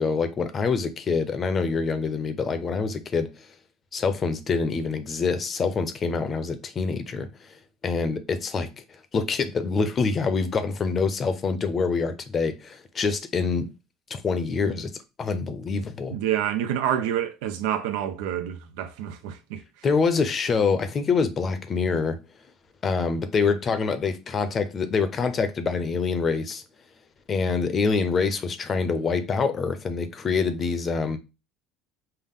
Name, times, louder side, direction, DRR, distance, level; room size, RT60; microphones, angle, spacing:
voice 1, 0.0-3.5 3.9-7.6 7.8-8.7 9.1-13.7 14.1-14.9 15.2-16.1 19.8-22.2 22.8-26.6 27.3-31.2, left 4 dB, 30° left, 0.6 m, -25 dB
voice 2, 16.1-19.6, right 10 dB, 90° right, 0.6 m, -28 dB
5.6 x 2.1 x 3.6 m
cardioid pair, 135°, 0 cm